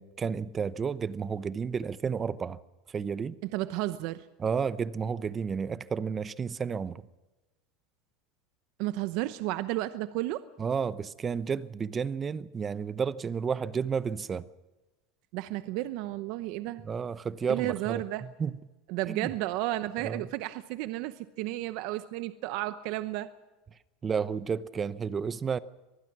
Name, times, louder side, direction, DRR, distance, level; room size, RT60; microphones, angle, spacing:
voice 1, 0.0-2.6 2.9-3.4 4.4-7.0 10.6-14.5 16.8-18.0 18.4-18.5 19.1-19.3 20.0-20.3 24.0-25.6, right 6 dB, 25° right, 0.8 m, -31 dB
voice 2, 3.4-4.3 8.8-10.5 15.3-16.8 17.5-18.3 18.9-23.3, right 16 dB, 60° right, 0.8 m, -32 dB
24.5 x 19.5 x 6.1 m
supercardioid pair, 130°, 0 cm